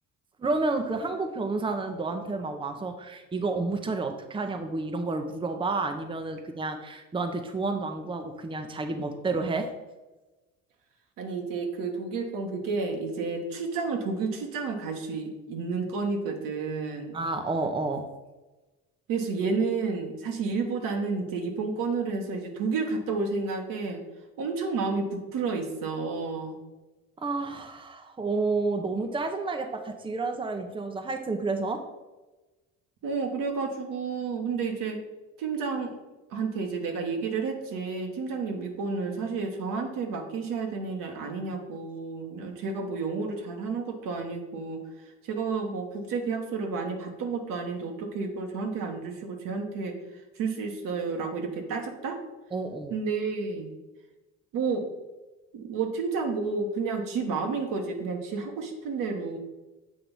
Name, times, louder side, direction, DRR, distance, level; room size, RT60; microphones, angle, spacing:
voice 1, 0.4-9.7 17.1-18.1 27.2-31.8 52.5-53.0, right 3 dB, 15° right, 5 dB, 0.7 m, -30 dB
voice 2, 11.2-17.2 19.1-24.0 24.4-26.6 33.0-35.0 35.4-35.9 36.3-44.8 45.2-50.0 50.4-52.2 52.9-53.7 54.5-54.8 55.5-59.4, right 4 dB, 65° right, 3 dB, 1.3 m, -31 dB
7.8 x 2.9 x 5.4 m, 1.1 s
supercardioid pair, 70°, 35 cm